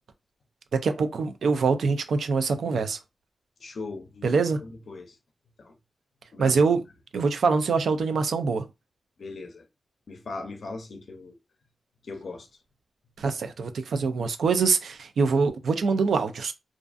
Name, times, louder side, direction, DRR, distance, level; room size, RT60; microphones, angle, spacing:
voice 1, 0.7-3.0 4.2-4.6 6.4-6.8 7.1-8.6 13.2-16.5, right 4 dB, 80° right, 0.3 m, -24 dB
voice 2, 3.6-4.3 4.6-5.2 5.6-5.7 6.3-6.6 9.2-9.7 10.1-11.4 12.0-12.5, left 3 dB, 55° left, 0.5 m, -39 dB
2.4 x 2.4 x 2.3 m
wide cardioid pair, 170°, 0 cm